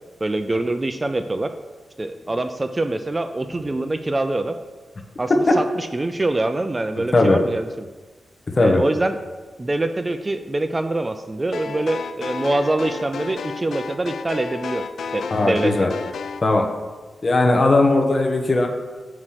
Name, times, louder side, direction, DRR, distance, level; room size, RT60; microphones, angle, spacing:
voice 1, 0.2-1.5 2.0-4.6 5.2-7.9 8.6-9.2 9.6-14.8 15.1-15.9, right 2 dB, 25° right, 8 dB, 0.3 m, -24 dB
sound 1, 11.5-16.4, left 5 dB, 85° left, 0.4 m, -32 dB
voice 2, 15.3-15.9 16.4-16.7 17.2-18.7, left 2 dB, 35° left, 3 dB, 1.0 m, -18 dB
6.3 x 5.0 x 5.7 m, 1.3 s
wide cardioid pair, 115°, 0 cm